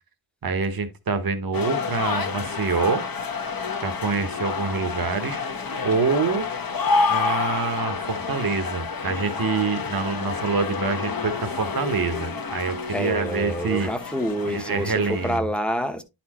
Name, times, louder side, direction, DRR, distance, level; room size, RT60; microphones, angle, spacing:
voice 1, 0.4-3.0 3.8-5.4 5.8-6.5 7.1-13.9 14.5-15.4, right 4 dB, 45° right, 1.1 m, -26 dB
sound 1, 1.5-15.4, left 4 dB, 45° left, 1.0 m, -29 dB
voice 2, 12.9-16.0, equal, ahead, 0.9 m, -27 dB
10.5 x 4.4 x 2.9 m
wide cardioid pair, 115°, 49 cm